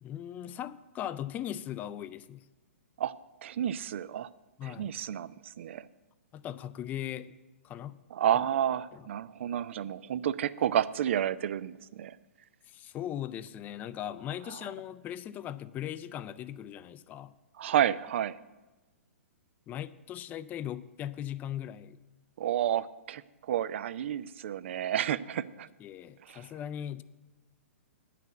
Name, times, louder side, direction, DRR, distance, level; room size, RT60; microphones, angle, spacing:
voice 1, 0.0-2.5 4.6-4.9 6.3-7.3 7.6-8.0 8.9-9.1 12.7-17.3 19.7-22.0 25.8-27.0, left 11 dB, 20° left, 14 dB, 0.4 m, -39 dB
voice 2, 3.4-4.3 4.6-5.9 8.1-12.2 17.6-18.4 22.4-25.7 26.3-26.4, right 10 dB, 55° right, 16 dB, 0.5 m, -30 dB
9.2 x 5.9 x 8.3 m, 1.1 s
figure-of-eight pair, 120°, 8 cm